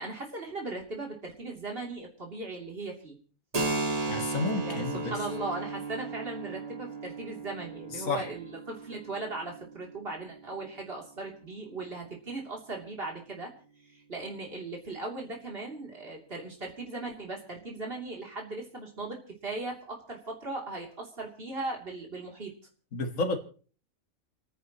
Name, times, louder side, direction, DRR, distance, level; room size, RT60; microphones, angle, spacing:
voice 1, 0.0-3.2 4.6-13.5 13.8-22.5, right 2 dB, 45° right, 0 dB, 3.4 m, -38 dB
Keyboard (musical), 3.5-10.9, right 3 dB, 30° right, 1.7 m, -36 dB
voice 2, 4.1-5.2 7.9-8.3 22.9-23.4, left 3 dB, 75° left, 6 dB, 2.1 m, -31 dB
29.5 x 10.0 x 3.1 m, 0.40 s
omnidirectional pair, 1.4 m